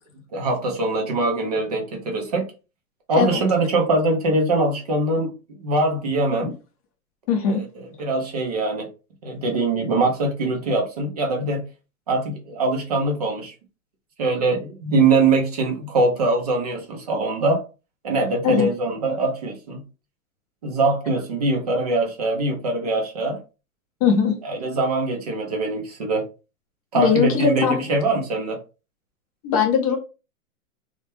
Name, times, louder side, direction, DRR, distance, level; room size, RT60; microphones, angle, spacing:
voice 1, 0.3-2.5 3.1-5.3 5.6-6.5 7.5-7.6 8.0-8.9 9.2-11.6 12.1-13.5 14.2-17.6 18.0-19.8 20.6-23.4 24.4-26.2 26.9-28.6, right 2 dB, 30° right, 0.3 m, -22 dB
voice 2, 7.3-7.6 18.4-18.7 24.0-24.4 26.9-27.8 29.4-30.0, left 6 dB, 25° left, 0.5 m, -20 dB
2.2 x 2.1 x 2.9 m
hypercardioid pair, 145°, 43 cm